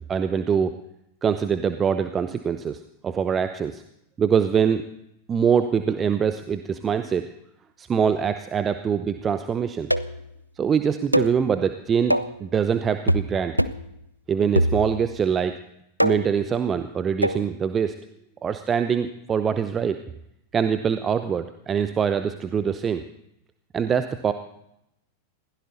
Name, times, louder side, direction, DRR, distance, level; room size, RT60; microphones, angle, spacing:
voice 1, 0.1-0.7 1.2-3.8 4.2-4.8 5.3-7.3 7.8-9.9 10.6-12.1 12.4-13.6 14.3-15.6 16.0-18.0 18.4-20.0 20.5-23.0 23.7-24.3, right 7 dB, 20° right, 10 dB, 0.8 m, -24 dB
sound 1, 9.9-10.3 11.1-11.4 12.1-12.4 13.1-13.3 13.6-13.9 14.6-15.1 16.0-16.4 17.2-17.5, equal, 90° right, 0.6 m, -23 dB
21.5 x 16.0 x 4.0 m, 0.80 s
figure-of-eight pair, 90°, 0 cm